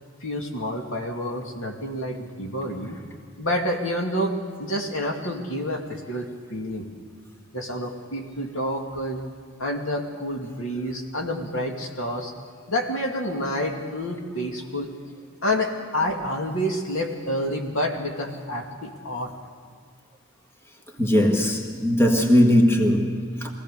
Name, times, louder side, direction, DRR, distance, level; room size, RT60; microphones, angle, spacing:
voice 1, 0.2-3.0 3.4-6.9 7.5-9.2 9.6-12.3 12.7-14.9 15.4-19.3, equal, 75° left, 1 dB, 2.5 m, -28 dB
voice 2, 21.0-23.5, equal, 10° left, 2 dB, 1.7 m, -19 dB
23.0 x 17.0 x 6.8 m, 2.1 s
head